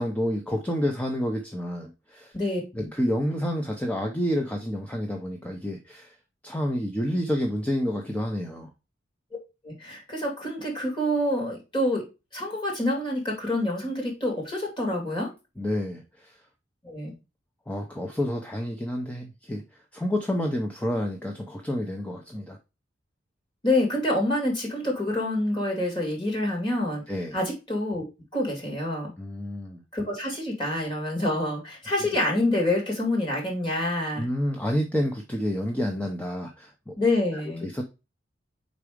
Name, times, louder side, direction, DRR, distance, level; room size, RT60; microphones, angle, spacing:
voice 1, 0.0-2.3 2.7-6.1 6.4-8.7 15.6-16.4 17.7-19.6 19.9-22.6 27.1-27.4 29.2-29.8 34.2-36.9 37.6-37.8, equal, 10° left, 2 dB, 0.7 m, -29 dB
voice 2, 2.3-2.9 9.6-12.0 12.3-15.3 16.8-17.1 23.6-27.0 27.3-28.1 28.3-29.1 29.9-34.3 37.0-37.7, left 1 dB, 25° left, -1 dB, 2.6 m, -27 dB
4.8 x 4.0 x 4.9 m, 0.27 s
head